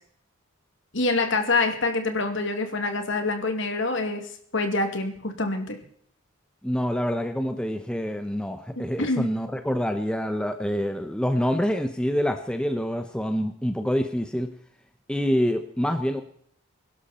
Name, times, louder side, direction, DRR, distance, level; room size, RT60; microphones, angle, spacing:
voice 1, 0.9-5.8 9.0-9.3, left 3 dB, 55° left, 6 dB, 2.5 m, -26 dB
voice 2, 6.6-14.5 15.1-16.2, equal, 5° left, 6 dB, 0.8 m, -26 dB
22.5 x 12.0 x 4.3 m, 0.63 s
head